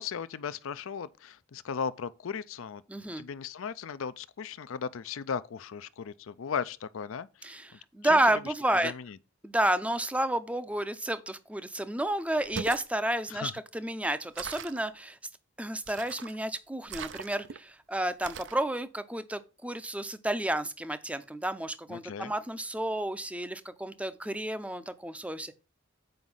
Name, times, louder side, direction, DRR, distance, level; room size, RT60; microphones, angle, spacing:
voice 1, 0.0-2.8 3.2-7.6 8.0-9.2 13.3-13.5 21.9-22.3, left 6 dB, 70° left, 0.4 m, -37 dB
voice 2, 2.9-3.2 7.4-8.9 9.4-15.2 15.6-25.6, right 1 dB, 5° right, 0.5 m, -31 dB
sound 1, 12.4-12.9 14.4-14.8 15.9-16.4 16.9-17.6 18.2-18.6, right 6 dB, 60° right, 0.5 m, -40 dB
7.8 x 5.0 x 5.5 m
head